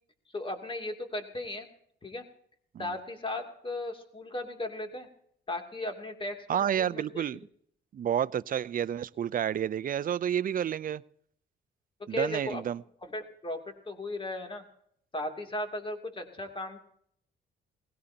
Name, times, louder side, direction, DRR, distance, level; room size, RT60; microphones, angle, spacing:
voice 1, 0.3-1.7 2.0-2.3 2.8-5.1 5.5-7.3 12.0-12.6 13.0-14.6 15.1-16.8, left 1 dB, 25° left, 2.8 m, -36 dB
voice 2, 6.5-7.4 7.9-11.0 12.1-12.8, right 9 dB, 45° right, 0.5 m, -30 dB
20.0 x 17.0 x 2.9 m
cardioid pair, 90°, 20 cm